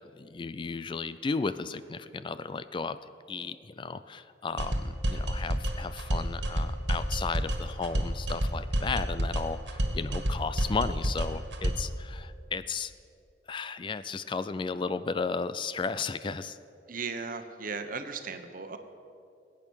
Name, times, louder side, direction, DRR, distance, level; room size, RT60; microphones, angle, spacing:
voice 1, 0.1-3.0 3.3-12.9 13.5-16.6, left 4 dB, 30° left, 13 dB, 0.4 m, -34 dB
sound 1, 4.6-11.9, equal, 90° right, 1.7 m, -30 dB
voice 2, 16.9-18.8, right 4 dB, 50° right, 8 dB, 1.1 m, -36 dB
20.0 x 8.9 x 6.4 m, 2.6 s
head